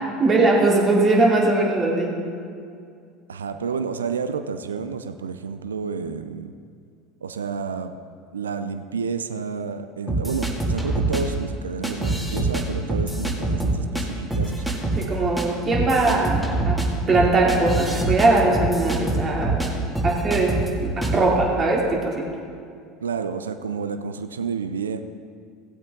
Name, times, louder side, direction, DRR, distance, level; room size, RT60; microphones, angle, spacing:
voice 1, 0.2-2.1 15.0-19.6 20.0-22.3, right 2 dB, 35° right, -2 dB, 2.5 m, -20 dB
voice 2, 3.3-6.5 7.2-8.0 8.3-15.2 23.0-25.0, right 5 dB, 90° right, 10 dB, 0.5 m, -30 dB
sound 1, 10.1-11.2 11.8-12.6 12.9-14.0 14.3-15.1 15.4-15.5 15.7-19.7 20.0-20.7 21.0-21.2, right 2 dB, 5° right, 2.2 m, -24 dB
16.5 x 8.1 x 3.7 m, 2.3 s
hypercardioid pair, 80°, 0 cm